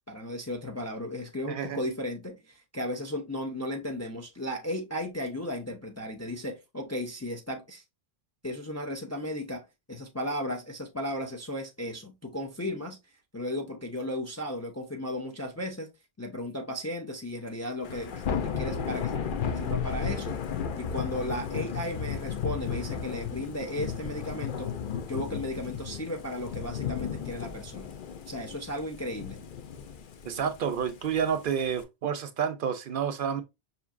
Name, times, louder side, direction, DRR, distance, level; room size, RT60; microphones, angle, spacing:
voice 1, 0.1-7.8 8.4-9.6 9.9-13.0 13.3-15.9 16.2-19.1 19.5-20.4 20.8-24.7 25.1-27.9 28.3-29.4, left 1 dB, 25° left, 0.4 m, -35 dB
voice 2, 1.5-1.8 30.3-33.4, right 7 dB, 65° right, 0.7 m, -29 dB
Thunder / Rain, 17.8-31.8, left 7 dB, 60° left, 0.7 m, -34 dB
5.8 x 2.7 x 2.4 m
omnidirectional pair, 1.0 m